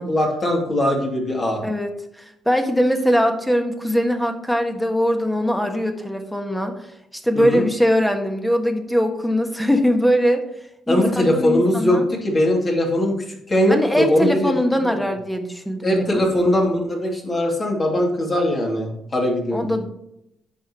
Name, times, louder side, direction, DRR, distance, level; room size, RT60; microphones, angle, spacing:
voice 1, 0.0-1.6 7.3-7.6 10.9-14.5 14.8-15.0 15.8-19.6, left 1 dB, 35° left, -1 dB, 2.6 m, -20 dB
voice 2, 2.2-6.8 7.1-10.4 10.9-12.0 13.7-16.2 19.5-19.9, equal, 5° left, 5 dB, 1.5 m, -21 dB
10.0 x 6.5 x 3.0 m, 0.83 s
cardioid pair, 90°, 0 cm